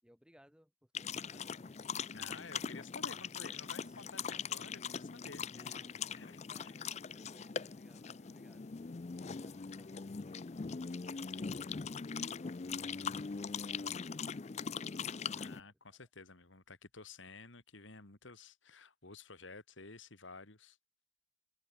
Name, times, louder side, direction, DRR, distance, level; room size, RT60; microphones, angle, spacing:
voice 1, 0.0-2.6 3.1-3.2 3.4-4.1 5.5-11.4 12.0-16.0, equal, 5° right, 5.9 m, -67 dB
sound 1, 0.9-15.6, left 6 dB, 35° left, 0.4 m, -41 dB
voice 2, 2.1-5.8 6.1-6.7 15.3-20.8, left 3 dB, 75° left, 2.3 m, -53 dB
sound 2, 7.5-14.0, equal, 15° left, 4.8 m, -68 dB
open air
head